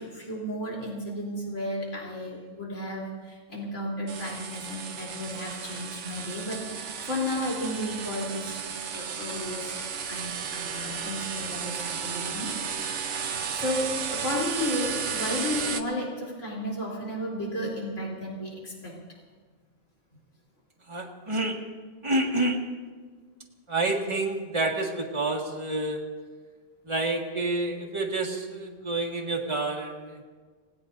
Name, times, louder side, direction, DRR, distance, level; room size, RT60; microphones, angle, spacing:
voice 1, 0.0-8.6 8.9-9.7 10.1-12.5 13.5-18.9, left 1 dB, 85° left, -3 dB, 4.1 m, -33 dB
sound 1, 4.1-15.8, right 6 dB, 75° right, 1.2 m, -34 dB
voice 2, 20.9-21.6 22.0-22.6 23.7-26.0 26.9-30.2, right 2 dB, 25° right, -2 dB, 1.9 m, -28 dB
28.0 x 18.5 x 2.7 m, 1.5 s
omnidirectional pair, 1.2 m